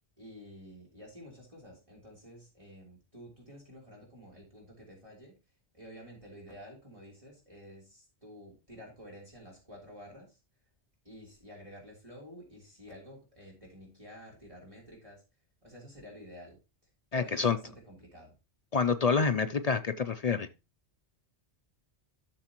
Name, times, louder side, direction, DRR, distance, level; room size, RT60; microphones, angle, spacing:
voice 1, 0.2-5.4 5.7-10.4 11.0-15.2 15.6-16.6 17.1-18.3, equal, 30° right, -2 dB, 3.2 m, -50 dB
voice 2, 17.1-17.6 18.7-20.5, left 5 dB, 50° left, 9 dB, 0.4 m, -27 dB
12.0 x 6.5 x 2.9 m, 0.28 s
omnidirectional pair, 1.2 m